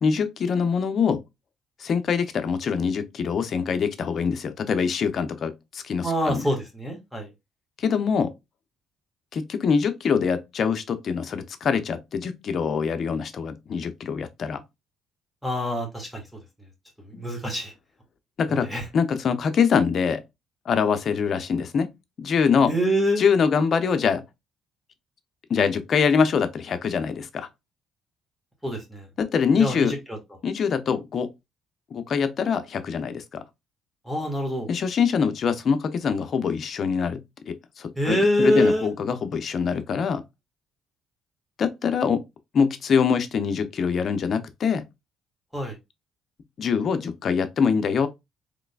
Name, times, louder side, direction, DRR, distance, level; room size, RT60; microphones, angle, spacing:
voice 1, 0.0-1.2 1.8-6.4 7.8-8.3 9.3-14.6 17.1-17.2 18.4-18.7 18.9-20.2 20.7-21.9 22.2-22.7 23.2-24.2 25.5-27.5 29.2-29.9 30.4-31.3 31.9-33.4 34.7-37.2 37.5-40.2 41.6-42.2 42.5-44.8 46.6-48.1, left 6 dB, 50° left, 0.6 m, -24 dB
voice 2, 6.0-7.3 15.4-16.3 17.0-17.7 18.5-18.9 22.7-23.2 28.6-29.1 29.6-30.2 34.0-34.7 38.0-38.9 45.5-45.8, equal, ahead, 1.5 m, -25 dB
3.7 x 3.2 x 2.3 m
cardioid pair, 95°, 0 cm